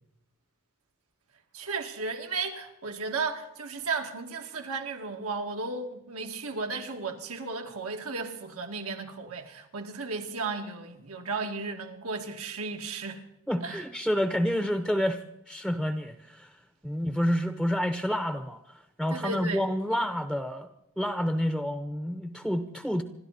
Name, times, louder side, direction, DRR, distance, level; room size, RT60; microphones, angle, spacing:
voice 1, 1.5-13.2 13.6-13.8 19.1-19.6, right 4 dB, 85° right, 2.2 m, -34 dB
voice 2, 13.5-16.6 16.8-20.7 21.0-23.0, equal, ahead, 0.7 m, -29 dB
27.0 x 12.5 x 4.2 m
head